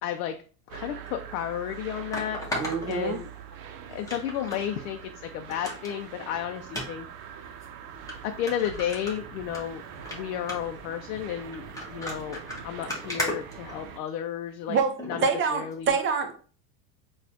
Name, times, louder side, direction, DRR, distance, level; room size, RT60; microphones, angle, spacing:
voice 1, 0.0-0.4 0.7-2.4 2.9-3.3 3.9-7.5 8.2-9.8 10.1-12.4 12.6-14.8 15.1-15.9, left 10 dB, 65° left, 5 dB, 0.5 m, -32 dB
sound 1, 0.7-14.0, right 8 dB, 65° right, 0.7 m, -43 dB
sound 2, 1.1-1.2 2.1-3.6 4.1-4.6 5.0-5.1 5.5-5.9 6.7-6.9 7.6-7.7 8.1-8.2 8.5-9.6 9.9-10.2 10.5-10.8 11.5-14.2 15.0-15.2 15.7-15.8, left 1 dB, 5° left, 0.9 m, -35 dB
voice 2, 2.5-3.2 14.7-16.3, right 5 dB, 25° right, 7 dB, 0.5 m, -26 dB
4.1 x 2.4 x 2.7 m, 0.39 s
supercardioid pair, 110°, 47 cm